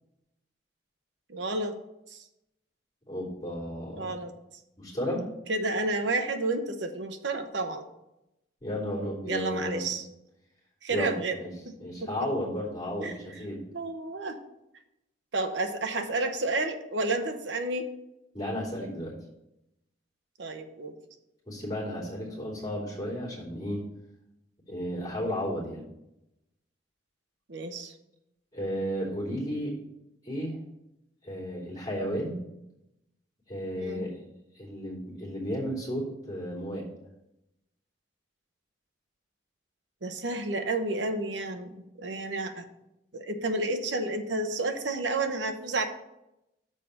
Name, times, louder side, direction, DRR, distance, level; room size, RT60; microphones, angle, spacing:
voice 1, 1.3-1.8 2.1-2.2 3.9-4.3 5.5-7.8 9.2-10.1 10.8-11.4 12.0-12.1 13.0-14.4 15.3-17.9 20.4-20.9 27.5-27.9 33.8-34.0 40.0-42.7 43.1-45.8, right 2 dB, 70° right, 7 dB, 0.9 m, -31 dB
voice 2, 3.1-4.1 4.8-5.2 8.6-9.9 10.9-11.5 11.8-13.6 18.3-19.1 21.4-23.8 24.7-25.9 28.5-29.7 30.2-30.6 31.2-32.4 33.5-34.2 34.5-36.8, equal, 20° left, -7 dB, 3.3 m, -33 dB
6.7 x 5.0 x 6.9 m, 0.88 s
head